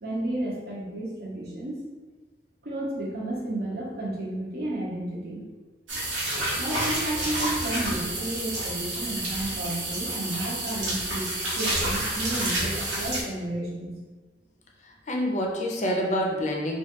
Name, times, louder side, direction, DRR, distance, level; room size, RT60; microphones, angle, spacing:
voice 1, 0.0-1.8 2.6-5.4 6.5-14.0, right 1 dB, 55° right, -3 dB, 0.7 m, -32 dB
sound 1, 5.9-13.2, right 1 dB, 85° right, 0.8 m, -29 dB
voice 2, 14.8-16.8, equal, 40° left, 0 dB, 0.5 m, -27 dB
3.1 x 2.3 x 2.9 m, 1.3 s
head